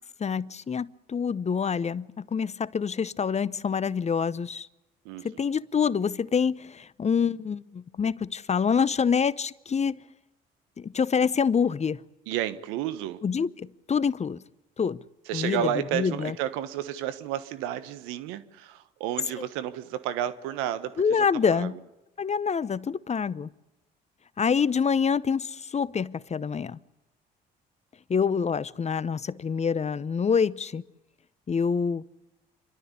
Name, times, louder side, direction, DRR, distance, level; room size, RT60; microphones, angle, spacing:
voice 1, 0.2-4.7 5.2-10.0 10.8-12.0 13.2-14.4 14.8-15.0 15.3-15.6 15.9-16.3 21.0-21.7 22.2-23.5 24.4-26.8 28.1-30.8 31.5-32.0, left 6 dB, 30° left, 0.8 m, -26 dB
voice 2, 5.0-5.5 12.3-13.2 15.3-21.3 21.5-21.7, right 11 dB, 80° right, 1.3 m, -31 dB
28.5 x 12.5 x 9.8 m
hypercardioid pair, 60°, 21 cm